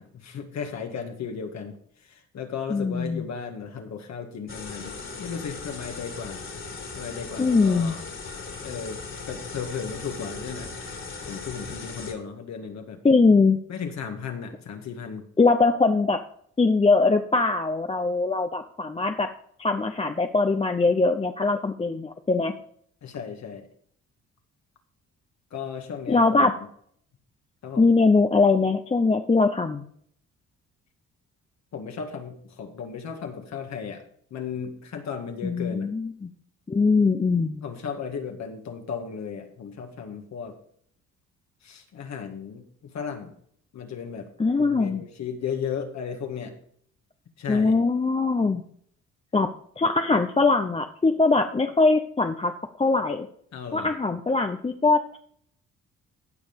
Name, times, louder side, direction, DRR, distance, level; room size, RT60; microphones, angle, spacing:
voice 1, 0.0-6.5 7.0-8.0 8.6-9.0 9.3-10.7 11.3-13.0 13.7-15.3 23.0-23.7 25.5-26.7 27.6-28.0 31.7-34.0 34.3-35.9 37.6-40.6 41.6-43.4 43.7-44.3 44.6-46.6 47.4-47.8 53.5-53.9, left 6 dB, 60° left, 4 dB, 1.9 m, -35 dB
voice 2, 2.7-3.2 7.4-8.0 13.0-13.6 15.4-16.2 16.6-19.3 19.6-22.5 26.1-26.5 27.8-29.9 35.4-36.3 36.7-37.6 44.4-45.0 47.5-48.6 49.3-49.5 49.8-52.5 52.8-53.3 53.7-55.2, left 3 dB, 20° left, 6 dB, 0.8 m, -21 dB
sound 1, 4.5-12.1, left 4 dB, 40° left, 2.6 m, -38 dB
15.5 x 5.3 x 5.2 m, 0.64 s
cardioid pair, 90°, 30 cm